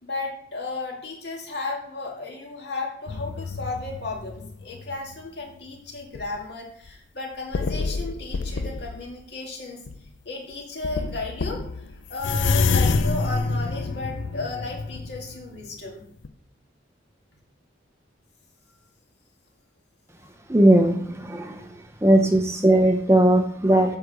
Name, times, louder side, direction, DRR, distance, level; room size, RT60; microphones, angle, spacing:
voice 1, 0.0-9.8 10.3-16.0, left 3 dB, 55° left, -1 dB, 2.2 m, -34 dB
sound 1, 3.1-5.2 5.8-6.4 6.9-7.0 7.5-9.1 9.9-10.1 10.5-10.6 10.8-15.9 16.2-16.3, left 4 dB, 75° left, 0.5 m, -27 dB
voice 2, 20.5-21.7 22.0-24.0, right 1 dB, 15° right, 4 dB, 0.6 m, -18 dB
7.8 x 4.9 x 6.5 m, 0.64 s
head